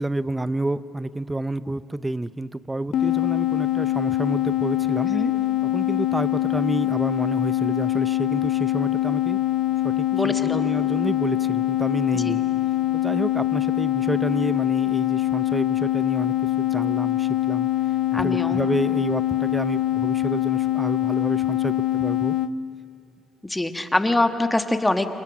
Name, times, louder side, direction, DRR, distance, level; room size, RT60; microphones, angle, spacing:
voice 1, 0.0-5.1 5.6-9.4 9.8-12.4 12.9-17.7 18.1-22.4, right 2 dB, 15° right, 15 dB, 0.6 m, -29 dB
sound 1, 2.9-22.5, left 15 dB, 70° left, 0.7 m, -23 dB
voice 2, 10.1-10.6 12.1-12.4 18.1-18.6 23.4-25.1, left 2 dB, 10° left, 7 dB, 1.4 m, -24 dB
28.5 x 28.0 x 6.1 m, 2.6 s
cardioid pair, 90°, 0 cm